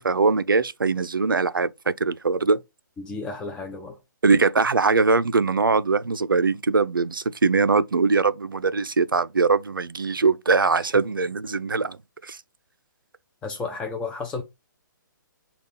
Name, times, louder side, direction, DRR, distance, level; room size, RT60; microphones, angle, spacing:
voice 1, 0.0-2.6 4.2-12.0 12.2-12.4, right 4 dB, 90° right, 0.4 m, -22 dB
voice 2, 3.0-4.0 10.7-11.0 13.4-14.4, left 4 dB, 10° left, 0.4 m, -33 dB
5.4 x 2.3 x 3.7 m
figure-of-eight pair, 130°, 11 cm